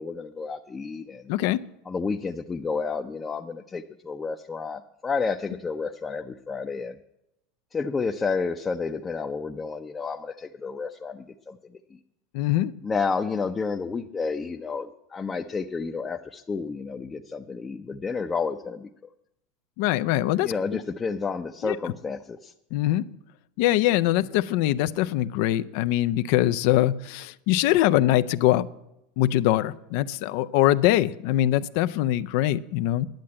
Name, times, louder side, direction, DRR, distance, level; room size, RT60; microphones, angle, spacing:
voice 1, 0.0-1.2 1.9-7.0 7.7-11.6 12.8-18.9 20.4-22.5, left 4 dB, 20° left, 5 dB, 0.6 m, -30 dB
voice 2, 1.3-1.6 12.3-12.7 19.8-20.5 21.6-21.8 22.7-23.1 23.6-28.7 29.2-33.1, left 14 dB, 70° left, 13 dB, 0.5 m, -23 dB
10.5 x 7.6 x 9.6 m, 0.85 s
supercardioid pair, 110°, 0 cm